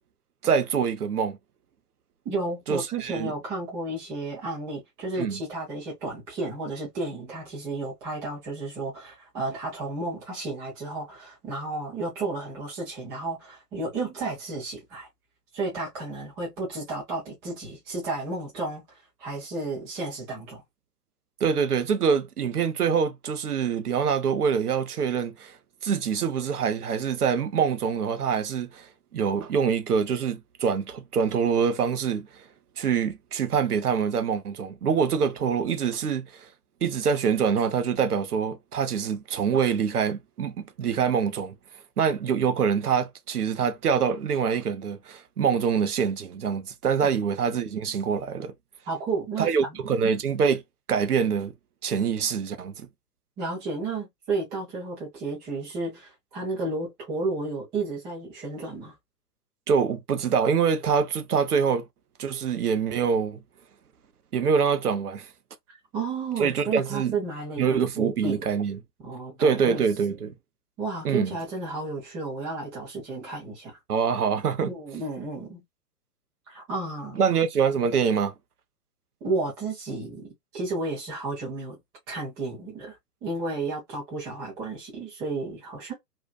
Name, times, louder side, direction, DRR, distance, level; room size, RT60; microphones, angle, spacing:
voice 1, 0.4-1.4 2.7-3.3 5.2-5.4 21.4-25.6 25.8-32.3 32.8-36.5 36.8-41.6 42.0-48.5 49.4-50.6 50.9-51.5 51.8-52.9 59.7-61.9 62.2-63.4 64.3-65.3 66.4-67.1 67.6-68.8 69.4-70.4 71.0-71.4 73.9-74.7 77.1-78.3, right 6 dB, 75° right, 0.7 m, -25 dB
voice 2, 2.2-15.1 15.5-18.8 19.2-20.6 47.0-47.1 48.9-49.8 53.4-58.9 65.9-68.4 69.0-69.8 70.8-73.8 74.6-75.6 76.5-77.2 79.2-81.8 82.1-83.0 83.2-85.9, right 3 dB, 10° right, 0.4 m, -32 dB
2.6 x 2.3 x 2.2 m
figure-of-eight pair, 120°, 46 cm